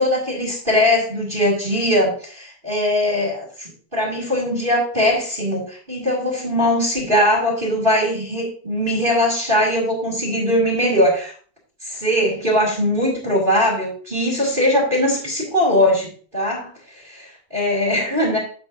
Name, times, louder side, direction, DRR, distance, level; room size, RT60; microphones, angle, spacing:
voice 1, 0.0-11.3 11.8-16.7 17.5-18.4, left 1 dB, 20° right, -3 dB, 2.1 m, -20 dB
9.7 x 7.0 x 2.5 m, 0.43 s
omnidirectional pair, 3.4 m